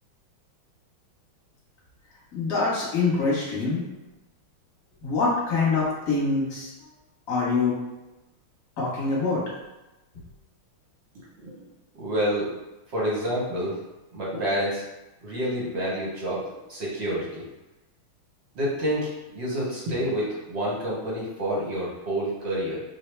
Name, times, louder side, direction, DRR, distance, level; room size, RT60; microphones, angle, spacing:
voice 1, 2.3-3.9 5.0-6.7 7.3-7.7 8.8-9.4, left 4 dB, 50° left, -6 dB, 1.2 m, -24 dB
voice 2, 11.9-12.5 12.9-13.8 14.1-14.8 15.2-17.4 18.5-22.8, equal, 55° right, -6 dB, 0.7 m, -28 dB
4.5 x 2.1 x 3.2 m, 1.0 s
omnidirectional pair, 2.3 m